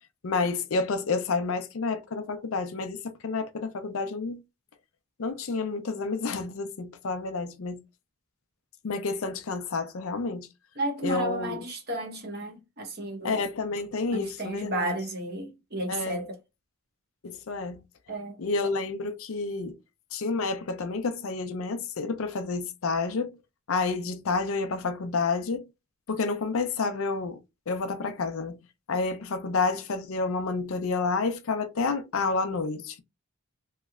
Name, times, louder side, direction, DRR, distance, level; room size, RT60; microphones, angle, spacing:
voice 1, 0.2-4.4 5.2-7.8 8.8-10.5 11.0-11.6 13.2-14.9 15.9-16.2 17.2-17.8 18.4-19.8 20.1-23.3 23.7-25.6 26.1-27.4 27.7-28.6 28.9-33.0, left 4 dB, 70° left, 0.5 m, -29 dB
voice 2, 10.8-13.4 14.1-16.4 18.1-18.5, right 1 dB, 45° right, 1.0 m, -33 dB
3.1 x 2.9 x 2.4 m
head